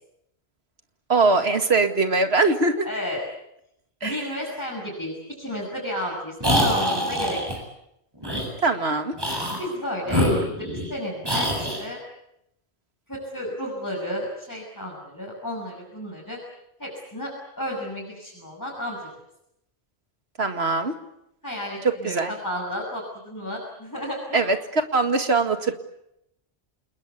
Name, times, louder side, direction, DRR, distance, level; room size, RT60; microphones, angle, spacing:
voice 1, 1.1-2.9 4.0-4.3 8.6-9.1 20.4-21.0 21.8-22.3 24.3-25.7, right 3 dB, 80° right, 8 dB, 2.3 m, -22 dB
voice 2, 2.8-3.2 4.0-7.4 9.6-10.5 10.9-12.0 13.1-16.4 16.8-17.3 17.6-19.1 21.4-24.4, left 1 dB, 20° left, -4 dB, 7.0 m, -32 dB
sound 1, 6.4-7.6 8.2-8.5 9.2-9.6 10.1-10.9 11.2-11.8, equal, 20° right, 7.7 m, -24 dB
28.5 x 20.5 x 8.4 m, 0.81 s
omnidirectional pair, 1.1 m